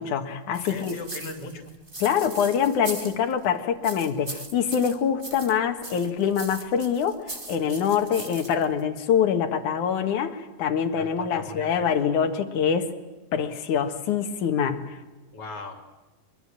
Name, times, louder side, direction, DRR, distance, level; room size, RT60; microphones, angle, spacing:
voice 1, 0.0-1.0 2.0-7.2 7.5-12.9 13.3-15.0, left 7 dB, 65° left, 7 dB, 3.0 m, -25 dB
sound 1, 0.5-3.4 3.8-5.6 5.8-8.8, right 2 dB, 15° right, 2.2 m, -39 dB
voice 2, 0.6-1.7 10.9-11.9 15.3-15.8, left 3 dB, 40° left, 5 dB, 3.6 m, -39 dB
24.0 x 23.5 x 7.6 m, 1.2 s
omnidirectional pair, 4.0 m